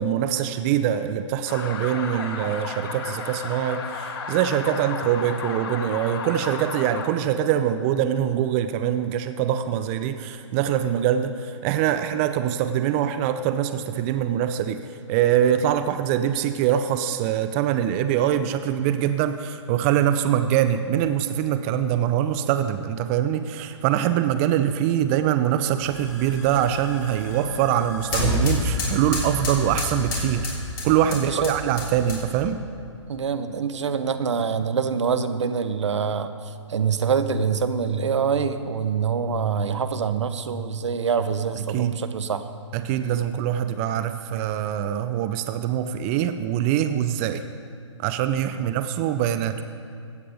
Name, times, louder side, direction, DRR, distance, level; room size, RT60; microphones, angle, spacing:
voice 1, 0.0-14.8 15.1-30.5 30.8-32.6 41.7-42.0 42.7-47.4 48.0-49.6, right 10 dB, 25° right, 10 dB, 0.5 m, -23 dB
sound 1, 1.5-7.1, left 5 dB, 50° left, 1.5 m, -33 dB
sound 2, 25.8-32.5, left 1 dB, 35° left, 3.6 m, -29 dB
voice 2, 31.1-31.5 33.1-36.3 36.7-42.4 48.6-48.7, right 6 dB, 70° right, 11 dB, 0.8 m, -25 dB
15.5 x 8.6 x 5.1 m, 2.4 s
hypercardioid pair, 130°, 16 cm